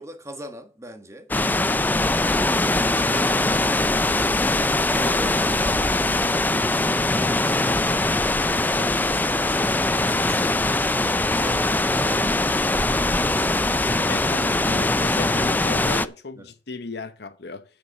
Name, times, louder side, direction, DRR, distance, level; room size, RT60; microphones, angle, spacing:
voice 1, 0.0-2.3 2.7-4.3 4.8-6.5 7.0-10.6 11.0-13.6 16.3-16.5, right 1 dB, 15° right, 1.4 m, -40 dB
sound 1, 1.3-16.1, left 2 dB, 10° left, 0.4 m, -22 dB
sound 2, 10.3-15.5, equal, 45° left, 1.5 m, -42 dB
voice 2, 14.0-17.6, left 3 dB, 65° left, 0.9 m, -35 dB
9.2 x 5.3 x 7.8 m
head